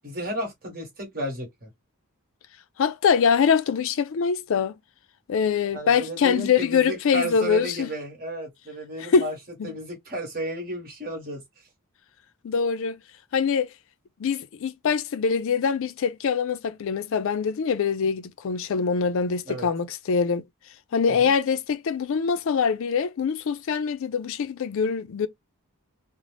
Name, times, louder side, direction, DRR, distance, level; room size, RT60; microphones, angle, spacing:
voice 1, 0.0-1.7 5.7-9.4 9.6-11.4 19.5-19.7 21.2-21.3, right 1 dB, 40° right, 1.2 m, -33 dB
voice 2, 2.8-4.7 5.3-7.9 9.0-9.3 9.6-9.7 12.4-13.0 13.3-13.7 14.2-20.4 20.9-25.3, left 6 dB, 60° left, 0.4 m, -24 dB
2.5 x 2.0 x 3.1 m
head